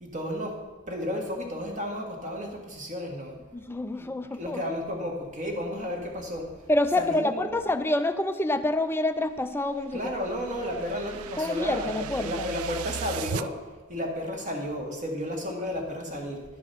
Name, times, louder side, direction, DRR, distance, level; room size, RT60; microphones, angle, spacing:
voice 1, 0.0-0.5 0.9-3.3 4.0-4.1 4.4-6.5 7.0-7.6 9.9-13.5 13.9-16.4, equal, 35° right, 2 dB, 1.5 m, -32 dB
voice 2, 3.5-4.6 6.7-10.1 11.4-12.5, left 1 dB, 10° left, 10 dB, 0.4 m, -27 dB
sound 1, 9.4-13.5, right 8 dB, 90° right, 0.4 m, -38 dB
11.0 x 5.0 x 6.7 m, 1.4 s
head